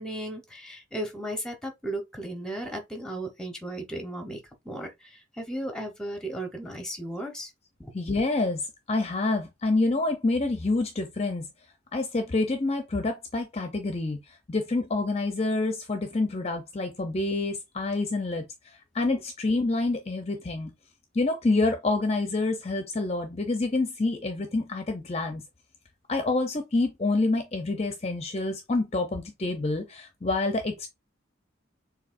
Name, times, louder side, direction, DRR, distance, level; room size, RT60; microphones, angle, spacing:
voice 1, 0.0-4.4 4.6-4.9 5.4-7.5 7.8-7.9, right 1 dB, 5° left, 1.1 m, -35 dB
voice 2, 7.9-11.5 11.9-18.4 18.9-20.7 21.1-25.4 26.1-30.9, left 2 dB, 30° left, 0.7 m, -27 dB
6.9 x 2.8 x 2.6 m
head